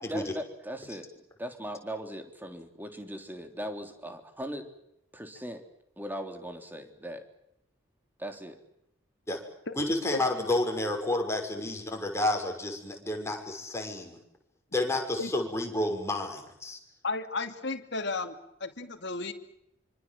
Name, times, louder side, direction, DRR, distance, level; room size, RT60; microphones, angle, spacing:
voice 1, 0.0-1.1 1.4-4.7 5.1-5.6 6.0-7.2 8.2-8.6, equal, 10° right, 5 dB, 3.5 m, -39 dB
voice 2, 9.8-14.2 14.7-16.8, left 1 dB, 15° left, 2 dB, 6.2 m, -30 dB
voice 3, 17.0-19.3, left 3 dB, 65° left, 5 dB, 2.7 m, -34 dB
27.0 x 25.5 x 7.7 m, 0.79 s
head